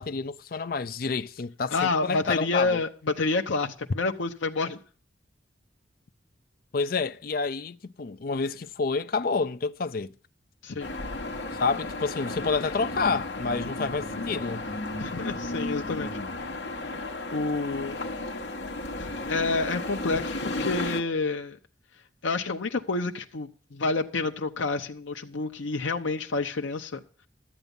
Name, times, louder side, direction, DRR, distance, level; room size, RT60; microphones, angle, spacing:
voice 1, 0.0-2.8 6.7-10.1 11.5-14.7, left 4 dB, 50° left, 0.5 m, -29 dB
voice 2, 1.7-4.8 10.6-10.9 15.0-16.1 17.3-18.0 19.0-21.6 22.2-27.0, left 3 dB, 80° left, 0.8 m, -29 dB
sound 1, 10.8-21.0, left 2 dB, 65° left, 1.2 m, -34 dB
12.5 x 8.1 x 5.3 m
head